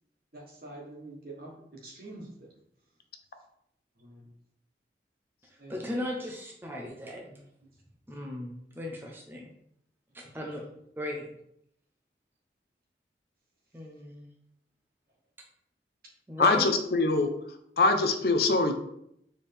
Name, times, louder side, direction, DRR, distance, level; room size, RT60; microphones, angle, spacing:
voice 1, 0.3-2.5 4.0-4.3 5.6-5.8, right 2 dB, 55° right, -2 dB, 1.2 m, -46 dB
voice 2, 5.4-7.4 8.1-9.5 10.1-10.6 11.0-11.3 13.7-14.3 16.3-16.7, left 1 dB, 10° right, -1 dB, 0.5 m, -37 dB
voice 3, 16.4-17.3 17.8-18.8, left 3 dB, 60° left, 7 dB, 0.5 m, -23 dB
4.4 x 3.4 x 3.4 m, 0.74 s
head